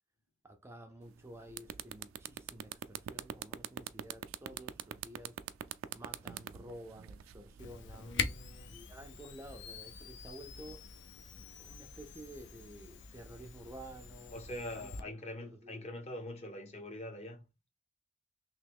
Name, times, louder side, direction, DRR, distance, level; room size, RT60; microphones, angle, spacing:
voice 1, 0.4-5.4 5.9-8.2 8.7-10.8 11.3-14.3 14.8-15.1 15.4-15.9, right 1 dB, 15° right, 0.4 m, -51 dB
sound 1, 1.1-1.2 1.5-7.6, right 10 dB, 90° right, 0.3 m, -42 dB
Camera, 7.6-15.0, left 6 dB, 65° left, 0.4 m, -43 dB
voice 2, 8.0-8.8 14.3-17.4, left 1 dB, 35° left, 0.8 m, -44 dB
3.1 x 3.0 x 3.4 m
head